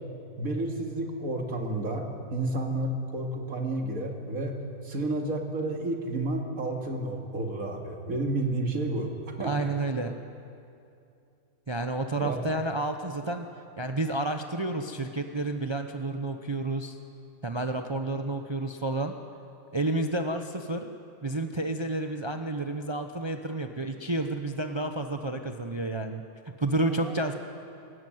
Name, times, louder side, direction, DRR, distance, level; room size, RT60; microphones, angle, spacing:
voice 1, 0.4-4.6 4.8-9.1 9.4-9.7 12.2-12.4 26.9-27.2, right 2 dB, 75° right, 2 dB, 2.6 m, -31 dB
voice 2, 9.4-10.2 11.7-13.5 13.8-17.0 17.4-19.1 19.7-20.9 21.2-26.2 26.6-27.3, right 2 dB, 25° right, 5 dB, 0.7 m, -30 dB
24.5 x 14.0 x 9.4 m, 2.6 s
omnidirectional pair, 1.5 m